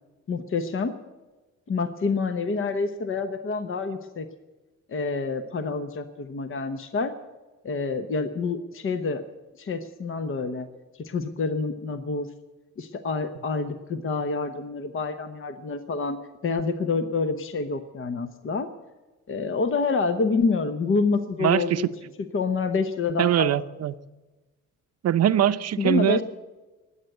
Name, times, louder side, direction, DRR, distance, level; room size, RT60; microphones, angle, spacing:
voice 1, 0.3-0.9 1.7-4.3 4.9-7.1 7.6-9.2 9.6-10.7 10.9-12.3 12.8-16.2 16.4-18.7 19.3-21.9 22.3-23.5 25.8-26.2, left 4 dB, 45° left, 9 dB, 1.1 m, -27 dB
voice 2, 21.4-21.9 23.2-23.9 25.0-26.2, right 11 dB, 55° right, 12 dB, 0.7 m, -22 dB
20.0 x 8.2 x 7.9 m, 1.2 s
cardioid pair, 90°, 30 cm